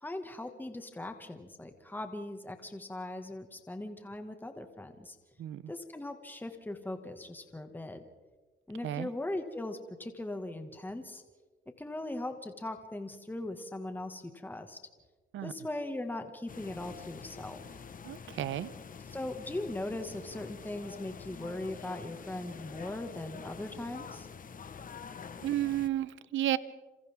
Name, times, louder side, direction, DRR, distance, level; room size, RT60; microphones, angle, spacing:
voice 1, 0.0-5.2 5.7-8.0 8.7-11.2 11.8-14.8 15.4-17.8 19.1-24.3, left 1 dB, 10° left, 6 dB, 2.0 m, -39 dB
voice 2, 5.4-5.7 8.8-9.1 15.3-15.5 18.0-18.7 25.4-26.6, right 13 dB, 75° right, 16 dB, 1.0 m, -32 dB
sound 1, 16.5-25.9, left 6 dB, 45° left, 1.4 m, -46 dB
28.0 x 27.0 x 3.7 m, 1.3 s
cardioid pair, 90°, 20 cm